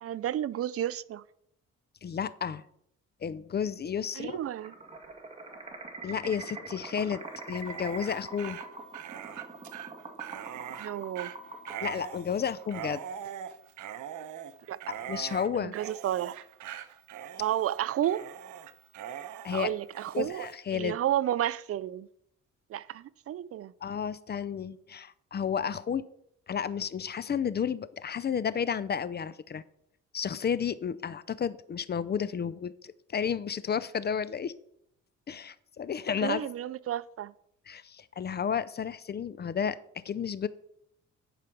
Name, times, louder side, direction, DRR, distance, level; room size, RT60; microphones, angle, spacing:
voice 1, 0.0-1.2 4.2-4.7 10.8-11.3 14.7-14.8 15.6-16.3 17.4-18.2 19.5-20.5 20.7-22.1 22.7-23.7 36.2-37.3, right 11 dB, 50° right, 0.4 m, -31 dB
voice 2, 2.0-2.6 3.2-4.4 6.0-8.6 11.8-13.0 15.1-15.7 19.4-19.7 20.1-21.0 23.8-26.1 26.5-29.6 30.1-34.5 35.3-36.5 37.7-40.5, left 7 dB, 35° left, 0.5 m, -32 dB
sound 1, 4.6-13.0, right 3 dB, 20° right, 1.7 m, -44 dB
Dog, 7.5-20.6, right 10 dB, 75° right, 0.9 m, -42 dB
11.0 x 4.9 x 6.0 m
cardioid pair, 90°, 30 cm